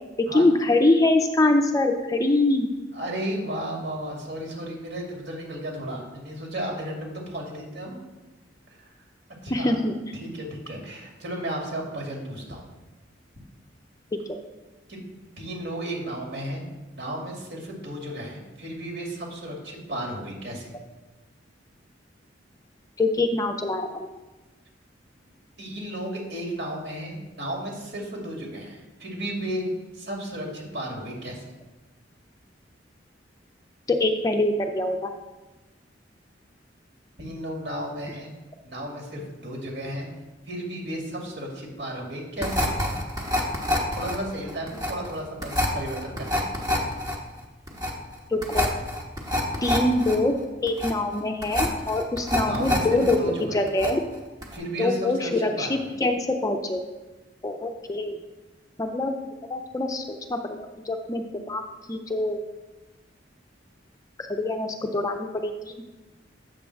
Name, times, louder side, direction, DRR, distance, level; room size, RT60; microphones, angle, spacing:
voice 1, 0.3-2.7 9.5-10.0 14.1-14.2 23.0-24.1 33.9-35.1 48.3-48.7 49.6-50.4 50.6-54.0 54.8-56.8 57.4-58.2 58.8-59.1 59.5-61.6 61.9-62.4 64.3-65.5, left 2 dB, 20° left, 5 dB, 0.4 m, -24 dB
voice 2, 2.9-8.0 8.8-8.9 9.4-9.8 10.2-12.7 14.9-15.0 15.4-16.6 17.0-20.7 25.6-29.6 29.9-31.4 37.2-38.3 38.6-40.1 40.5-42.7 44.0-46.5 52.4-53.6 54.5-55.9, right 1 dB, 60° right, -1 dB, 2.0 m, -34 dB
sound 1, 42.4-53.2 53.4-54.1 54.4-54.6, left 1 dB, 20° right, 1.0 m, -27 dB
7.6 x 3.6 x 6.3 m, 1.1 s
head